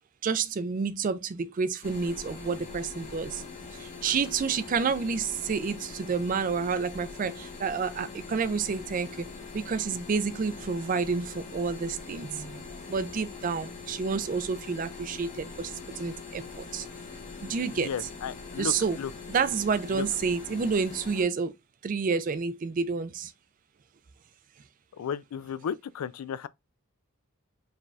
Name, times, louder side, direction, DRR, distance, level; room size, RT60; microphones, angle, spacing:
voice 1, 0.2-3.4 3.7-9.3 9.5-12.6 12.9-16.9 17.4-17.9 18.6-19.0 19.3-21.5 21.8-23.3, right 5 dB, 40° right, 0.3 m, -29 dB
sound 1, 1.8-21.2, left 4 dB, 35° left, 0.9 m, -43 dB
voice 2, 17.3-19.1 19.9-20.0 25.0-26.5, left 7 dB, 90° left, 0.3 m, -35 dB
4.8 x 3.3 x 2.3 m
head